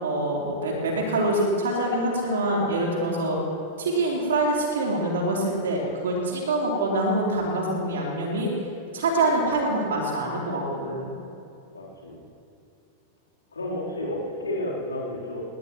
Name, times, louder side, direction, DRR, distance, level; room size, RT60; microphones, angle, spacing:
voice 1, 0.0-3.4 3.8-8.5 8.9-11.1, right 1 dB, 65° right, -2 dB, 3.9 m, -25 dB
voice 2, 11.7-12.2 13.5-15.4, left 1 dB, 75° left, -5 dB, 3.8 m, -31 dB
19.5 x 19.0 x 3.1 m, 2.7 s
figure-of-eight pair, 90°, 0 cm